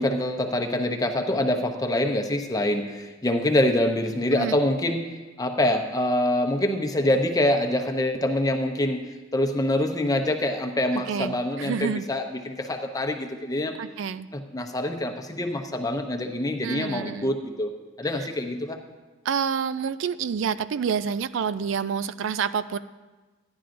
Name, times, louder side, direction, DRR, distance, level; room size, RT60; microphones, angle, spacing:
voice 1, 0.0-5.1 5.4-9.0 9.3-13.8 14.3-17.7 18.0-18.8, left 1 dB, 20° left, 3 dB, 0.7 m, -25 dB
voice 2, 10.9-12.1 13.8-14.3 16.6-17.3 18.2-18.3 19.2-22.8, right 6 dB, 65° right, 14 dB, 0.3 m, -28 dB
14.0 x 10.5 x 2.6 m, 1.2 s
head